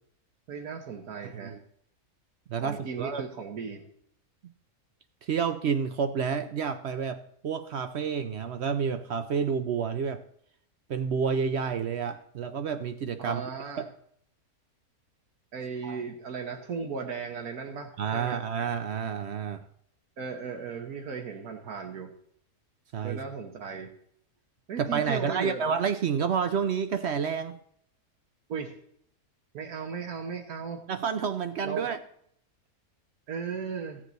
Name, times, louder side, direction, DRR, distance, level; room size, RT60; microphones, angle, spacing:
voice 1, 0.5-1.6 2.6-3.8 13.2-13.8 15.5-18.4 20.2-22.1 23.0-23.9 24.7-25.8 28.5-28.7 29.5-30.8 31.6-31.9 33.3-34.0, right 5 dB, 75° right, 3 dB, 1.5 m, -36 dB
voice 2, 2.5-3.2 5.2-10.2 10.9-13.4 13.8-13.9 15.8-16.0 18.0-19.6 22.9-23.2 24.8-27.6 30.9-32.0, right 6 dB, 60° right, 11 dB, 0.7 m, -29 dB
14.5 x 7.4 x 4.0 m, 0.67 s
omnidirectional pair, 1.6 m